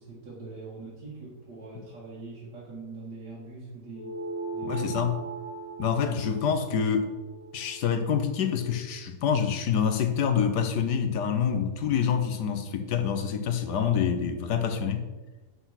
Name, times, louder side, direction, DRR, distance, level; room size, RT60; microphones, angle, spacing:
voice 1, 0.0-4.2 4.5-5.1, right 3 dB, 90° right, -6 dB, 2.6 m, -42 dB
sound 1, 3.9-8.7, right 3 dB, 50° left, 1.9 m, -39 dB
voice 2, 4.6-5.1 5.8-7.1 7.5-15.1, left 7 dB, 90° left, 8 dB, 1.6 m, -26 dB
8.2 x 5.8 x 5.9 m, 1.2 s
omnidirectional pair, 1.7 m